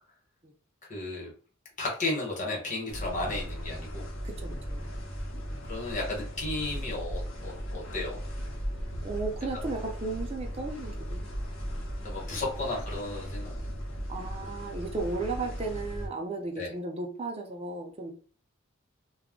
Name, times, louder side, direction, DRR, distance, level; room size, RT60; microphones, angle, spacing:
voice 1, 0.9-1.3 1.8-4.1 5.6-8.2 12.0-13.8 16.6-16.7, left 2 dB, 40° left, -2 dB, 1.1 m, -34 dB
sound 1, 2.9-16.1, equal, 65° left, 0.8 m, -37 dB
voice 2, 4.2-4.9 9.0-11.3 12.3-12.4 14.1-18.1, right 3 dB, 30° right, 3 dB, 0.5 m, -35 dB
2.3 x 2.0 x 3.6 m, 0.40 s
head